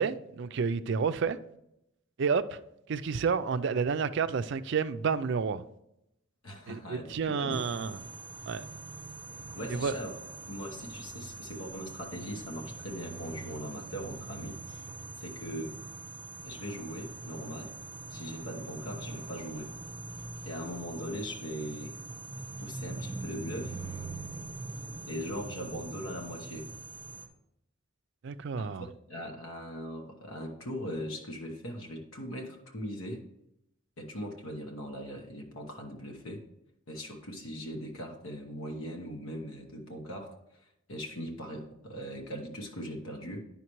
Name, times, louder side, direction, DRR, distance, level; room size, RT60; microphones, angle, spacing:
voice 1, 0.0-1.4 2.2-2.6 2.9-5.6 6.7-8.0 8.5-8.6 9.7-10.0 28.2-28.9, right 5 dB, 60° right, 0.4 m, -30 dB
voice 2, 6.4-7.6 9.5-10.1 10.5-14.8 15.2-15.7 16.4-17.7 18.1-19.7 20.5-21.9 22.6-23.8 25.1-26.7 28.6-28.7 29.1-33.2 34.0-36.4 36.9-40.3 40.6-43.4, equal, 80° left, 1.0 m, -40 dB
sound 1, 7.5-27.3, right 3 dB, 25° right, 0.8 m, -43 dB
9.7 x 5.7 x 3.0 m
head